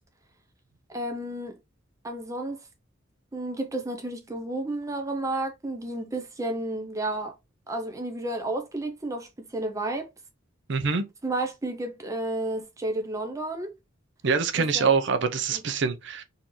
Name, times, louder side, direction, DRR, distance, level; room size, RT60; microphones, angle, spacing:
voice 1, 0.9-1.6 2.0-2.6 3.3-7.4 7.7-10.1 11.2-13.7 14.6-14.9 15.5-15.6, right 1 dB, 15° right, 0.5 m, -32 dB
voice 2, 10.7-11.1 14.2-16.2, right 5 dB, 60° right, 0.6 m, -25 dB
3.8 x 2.7 x 3.0 m
head